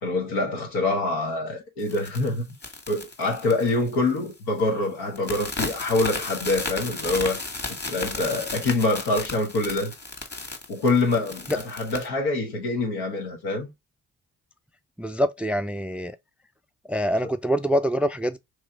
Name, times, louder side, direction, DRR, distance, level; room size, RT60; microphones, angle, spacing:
voice 1, 0.0-2.4 2.9-7.4 7.9-9.9 10.7-13.7, left 2 dB, 80° left, 1.4 m, -25 dB
sound 1, 1.8-4.3 4.6-4.8 5.2-12.1, left 2 dB, 25° left, 1.7 m, -34 dB
voice 2, 15.0-16.2 16.9-18.4, equal, 5° right, 0.4 m, -25 dB
3.1 x 3.1 x 3.7 m
hypercardioid pair, 40°, 38 cm